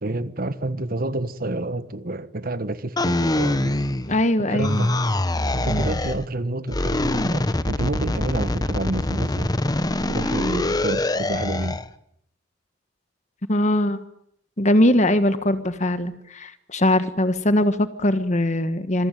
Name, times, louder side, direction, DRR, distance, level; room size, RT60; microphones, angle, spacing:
voice 1, 0.0-3.8 4.4-4.9 5.5-9.5 10.1-11.8, right 2 dB, 50° right, 1.4 m, -29 dB
sound 1, 3.0-4.3 4.6-6.2 6.7-11.9, left 1 dB, 20° left, 1.0 m, -24 dB
voice 2, 4.1-4.9 5.7-5.8 13.5-14.0 14.6-19.1, left 1 dB, 40° left, 1.5 m, -21 dB
26.5 x 22.5 x 9.4 m
head